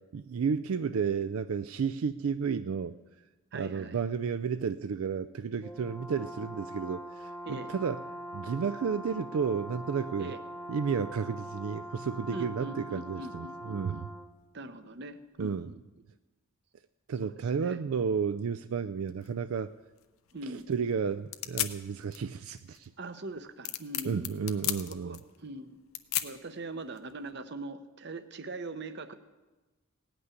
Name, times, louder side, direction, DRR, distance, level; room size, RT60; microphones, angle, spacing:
voice 1, 0.1-2.9 3.5-8.0 8.3-10.3 10.7-14.1 15.4-15.7 17.1-19.7 20.5-22.9 24.0-25.2, right 6 dB, 75° right, 12 dB, 0.4 m, -32 dB
voice 2, 3.5-4.0 7.5-7.7 10.2-10.4 12.3-14.1 14.5-15.8 17.2-17.8 20.3-20.7 23.0-25.8 26.2-29.1, right 2 dB, 50° right, 11 dB, 0.8 m, -42 dB
Brass instrument, 5.6-14.3, equal, 10° left, 0.7 m, -43 dB
sound 1, 19.2-27.3, left 13 dB, 75° left, 0.8 m, -38 dB
17.5 x 6.1 x 9.6 m, 1.2 s
head